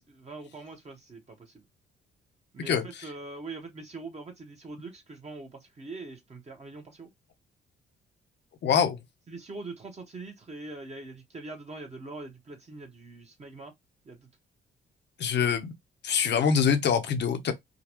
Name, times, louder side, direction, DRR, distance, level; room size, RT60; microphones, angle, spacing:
voice 1, 0.0-1.6 2.5-7.1 9.3-13.7 14.0-14.3, right 3 dB, 35° right, 1.1 m, -43 dB
voice 2, 8.6-9.0 15.2-15.7 16.0-17.5, left 7 dB, 60° left, 0.9 m, -24 dB
3.7 x 2.3 x 3.0 m
cardioid pair, 90°, 20 cm